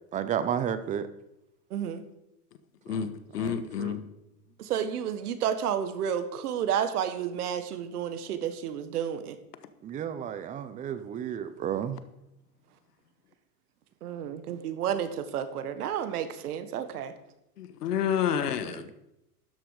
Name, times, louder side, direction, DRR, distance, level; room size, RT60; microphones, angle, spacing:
voice 1, 0.1-1.1 2.9-3.1 3.4-4.0 9.8-12.0 18.6-18.9, right 9 dB, 15° right, 0.6 m, -32 dB
voice 2, 1.7-2.0 4.6-9.4 14.0-17.1, right 9 dB, 75° right, 1.7 m, -31 dB
voice 3, 2.9-4.1 17.6-18.9, left 8 dB, 85° left, 1.5 m, -29 dB
12.5 x 10.5 x 4.9 m
hypercardioid pair, 135°, 46 cm